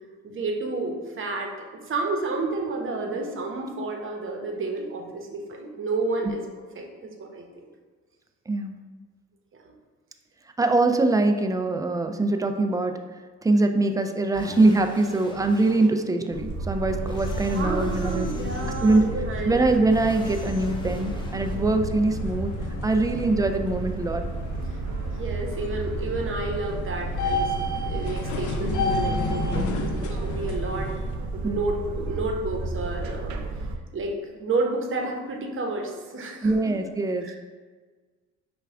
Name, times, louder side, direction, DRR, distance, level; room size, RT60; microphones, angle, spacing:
voice 1, 0.2-1.6 1.8-6.4 6.7-7.7 9.6-9.7 17.5-19.6 25.2-27.5 27.9-30.9 31.3-33.4 33.9-36.7 37.2-37.4, right 3 dB, 45° right, 1 dB, 0.9 m, -30 dB
voice 2, 10.6-13.0 13.4-18.3 18.8-19.1 19.4-22.5 22.8-24.2 29.5-29.8 31.4-31.6 36.4-37.3, right 2 dB, 10° right, 6 dB, 0.3 m, -23 dB
sound 1, 14.3-15.9 17.1-18.7 19.9-21.6, left 3 dB, 15° left, 0.7 m, -40 dB
sound 2, 16.3-33.8, right 3 dB, 70° right, 0.5 m, -32 dB
sound 3, 16.7-31.1, left 3 dB, 75° left, 0.6 m, -33 dB
5.5 x 2.3 x 3.5 m, 1.4 s
cardioid pair, 90°, 30 cm